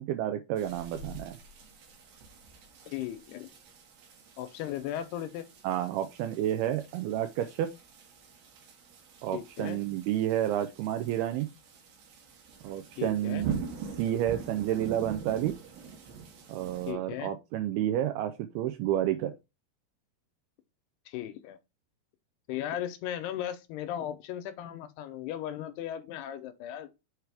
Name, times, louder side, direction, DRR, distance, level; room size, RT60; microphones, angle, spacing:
voice 1, 0.0-1.4 5.6-7.7 9.2-11.5 12.6-13.6 14.0-15.5 16.5-19.3, right 12 dB, 85° right, 2.2 m, -30 dB
sound 1, 0.6-16.9, right 5 dB, 65° right, 3.4 m, -44 dB
voice 2, 2.9-3.5 4.4-5.5 9.3-9.8 13.0-13.5 16.9-17.3 21.1-21.6 22.5-26.9, left 11 dB, 80° left, 2.5 m, -36 dB
8.0 x 4.7 x 3.4 m
omnidirectional pair, 5.0 m